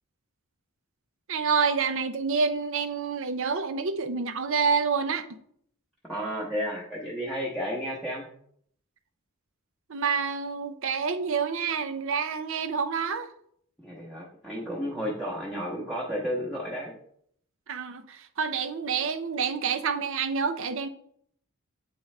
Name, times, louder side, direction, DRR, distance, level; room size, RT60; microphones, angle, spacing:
voice 1, 1.3-5.2 9.9-13.3 17.7-20.9, right 5 dB, 65° right, 10 dB, 0.6 m, -28 dB
voice 2, 6.0-8.3 13.8-17.0, equal, ahead, -6 dB, 0.9 m, -32 dB
8.4 x 3.8 x 3.2 m, 0.65 s
head